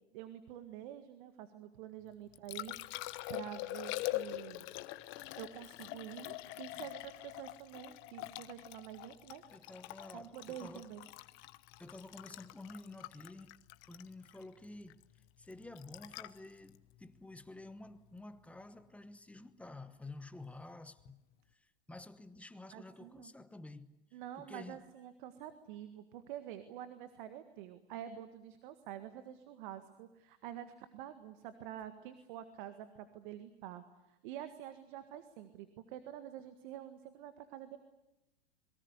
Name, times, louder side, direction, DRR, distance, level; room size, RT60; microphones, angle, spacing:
voice 1, 0.1-4.7 5.4-9.4 10.1-11.0 22.7-23.3 24.1-37.8, right 11 dB, 50° right, 1.9 m, -48 dB
Liquid, 2.1-18.2 21.0-21.1, left 17 dB, 40° left, 1.1 m, -45 dB
voice 2, 9.5-10.9 11.8-13.6 13.9-15.1 15.4-21.2 21.5-24.8, left 2 dB, 5° left, 1.1 m, -51 dB
27.0 x 23.0 x 8.2 m
hypercardioid pair, 125°, 32 cm